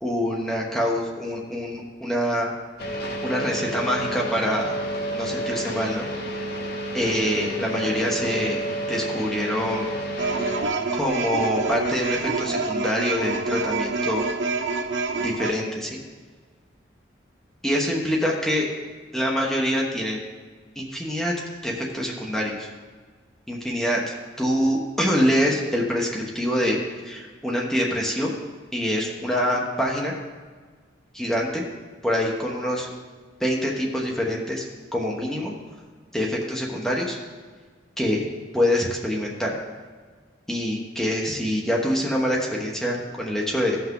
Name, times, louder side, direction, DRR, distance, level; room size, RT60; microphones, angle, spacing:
voice 1, 0.0-2.5 3.2-4.8 5.1-6.1 6.9-9.9 10.9-14.2 15.2-16.0 17.6-18.7 19.1-20.2 20.8-21.3 21.6-22.7 23.5-24.0 24.4-26.8 27.0-28.3 28.7-30.2 31.1-31.6 32.0-32.9 33.4-34.7 34.9-35.5 36.1-37.2 38.0-38.2 38.5-39.5 40.5-43.8, equal, ahead, -3 dB, 1.1 m, -25 dB
sound 1, 2.8-10.6, right 1 dB, 55° left, 1.5 m, -30 dB
sound 2, 10.2-15.5, right 3 dB, 85° right, 0.8 m, -27 dB
16.0 x 5.9 x 3.8 m, 1.5 s
head